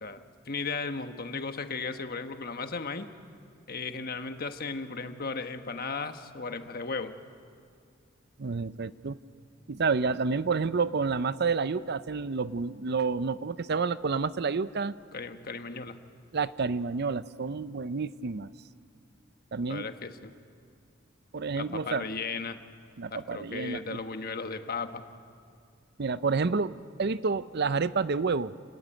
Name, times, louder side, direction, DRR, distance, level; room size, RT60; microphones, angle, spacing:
voice 1, 0.0-3.1 3.7-7.1 15.1-16.0 19.7-20.3 21.6-22.6 23.1-25.0, left 4 dB, 50° left, 8 dB, 1.3 m, -36 dB
voice 2, 8.4-9.2 9.7-14.9 16.3-18.5 19.5-19.9 21.3-22.0 23.0-24.0 26.0-28.5, right 4 dB, 55° right, 15 dB, 0.6 m, -29 dB
28.5 x 19.0 x 9.1 m, 2.2 s
head